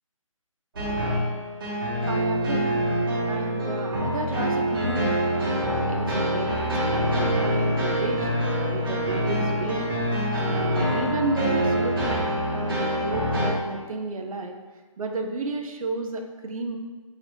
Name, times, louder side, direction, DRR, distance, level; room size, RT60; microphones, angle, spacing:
sound 1, 0.8-13.5, equal, 40° right, 1.0 m, -25 dB
voice 1, 1.7-2.8 3.3-8.3 8.6-9.9 10.3-14.6 15.0-16.8, right 2 dB, 85° right, 4 dB, 0.4 m, -32 dB
3.2 x 2.9 x 2.7 m, 1.4 s
hypercardioid pair, 165°, 17 cm